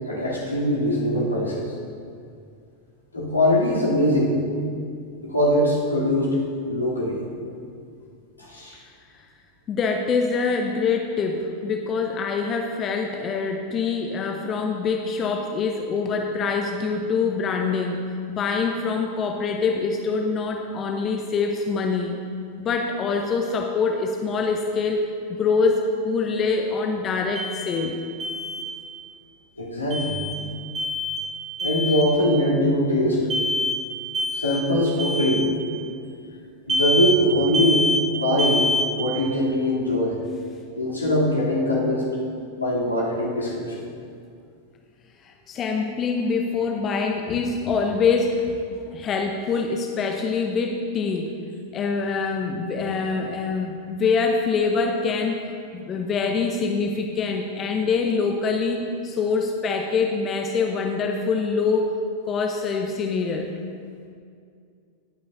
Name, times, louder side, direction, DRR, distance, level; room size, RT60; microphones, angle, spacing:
voice 1, 0.1-1.7 3.1-4.4 5.2-6.4 6.7-7.2 8.4-8.8 29.6-30.2 31.6-33.2 34.3-35.5 36.7-38.6 39.0-40.2 40.8-42.1 42.5-43.8, equal, 80° left, -7 dB, 3.0 m, -22 dB
voice 2, 9.7-18.0 18.3-22.1 22.6-25.0 25.3-28.0 45.2-51.3 51.7-61.9 62.3-63.5, left 4 dB, 30° left, 3 dB, 0.8 m, -25 dB
Alarm, 27.3-27.8 28.2-28.6 29.9-30.4 30.7-31.2 31.6-32.1 33.3-33.8 34.1-34.6 35.0-35.4 36.7-37.2 37.5-38.0 38.4-38.9, left 2 dB, 20° right, 2.1 m, -25 dB
19.5 x 8.9 x 2.7 m, 2.3 s
figure-of-eight pair, 90°, 0 cm